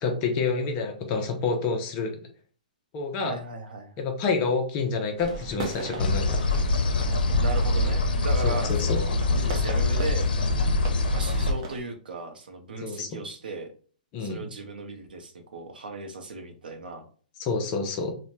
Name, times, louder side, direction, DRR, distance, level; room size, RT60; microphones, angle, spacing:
voice 1, 0.0-2.1 2.9-3.3 4.0-6.4 8.4-9.0 12.8-13.1 14.1-14.4 17.4-18.1, left 4 dB, 20° left, 4 dB, 0.4 m, -28 dB
voice 2, 3.2-3.9 7.4-10.3 11.1-13.7 14.2-17.1, right 3 dB, 90° right, 6 dB, 0.7 m, -36 dB
sound 1, 5.2-11.8, right 3 dB, 35° right, 0.6 m, -40 dB
sound 2, 6.0-11.5, left 2 dB, 85° left, 0.5 m, -24 dB
3.1 x 2.1 x 2.6 m, 0.43 s
hypercardioid pair, 165°, 5 cm